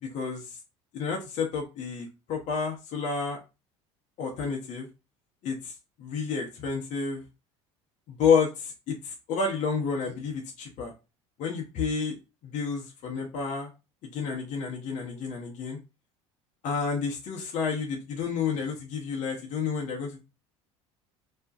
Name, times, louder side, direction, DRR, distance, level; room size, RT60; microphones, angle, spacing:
voice 1, 0.0-0.6 0.9-3.4 4.2-4.9 5.4-5.7 6.0-7.2 8.1-10.9 11.4-12.1 12.4-13.7 14.1-15.8 16.6-20.2, left 5 dB, 55° left, 0 dB, 0.7 m, -30 dB
2.4 x 2.1 x 2.5 m, 0.28 s
hypercardioid pair, 75°, 16 cm